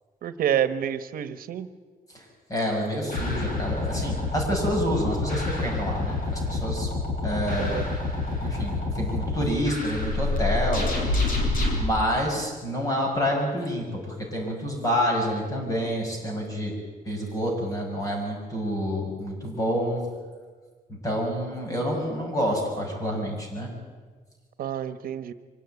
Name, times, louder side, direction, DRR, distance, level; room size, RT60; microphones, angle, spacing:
voice 1, 0.2-1.7 7.6-7.9 24.6-25.3, right 9 dB, 80° right, 12 dB, 1.1 m, -28 dB
voice 2, 2.1-6.9 7.2-7.8 8.2-10.9 11.8-16.7 17.0-20.0 21.0-23.7, equal, 25° left, 0 dB, 6.6 m, -28 dB
sound 1, 3.1-11.8, left 2 dB, 75° left, 5.9 m, -27 dB
24.5 x 17.0 x 9.4 m, 1.5 s
wide cardioid pair, 170°, 15 cm